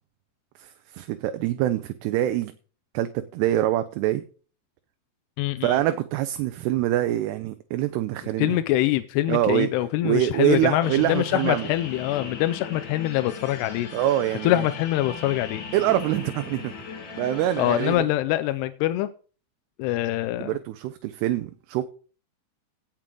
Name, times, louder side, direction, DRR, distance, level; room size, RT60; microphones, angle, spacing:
voice 1, 0.9-2.5 2.9-4.2 5.6-8.6 9.3-9.7 10.0-11.7 13.9-14.6 15.7-16.7 17.2-18.1 20.4-21.8, right 13 dB, 85° right, 2.7 m, -25 dB
voice 2, 5.4-5.8 8.4-13.9 14.4-15.6 17.6-19.1 19.8-20.6, left 15 dB, 85° left, 2.7 m, -24 dB
sound 1, 10.8-17.9, left 5 dB, 50° left, 1.4 m, -38 dB
16.5 x 7.3 x 3.8 m
omnidirectional pair, 4.7 m